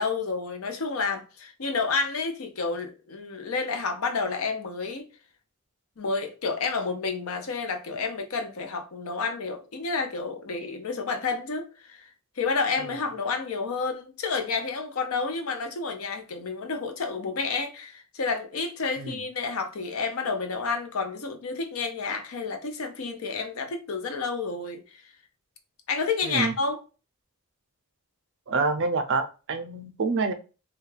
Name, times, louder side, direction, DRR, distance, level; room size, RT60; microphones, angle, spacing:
voice 1, 0.0-5.1 6.0-12.1 12.4-25.0 25.9-26.8, left 4 dB, 85° left, 0.6 m, -30 dB
voice 2, 26.2-26.5 28.5-30.3, right 4 dB, 60° right, 0.5 m, -27 dB
2.3 x 2.2 x 3.1 m
head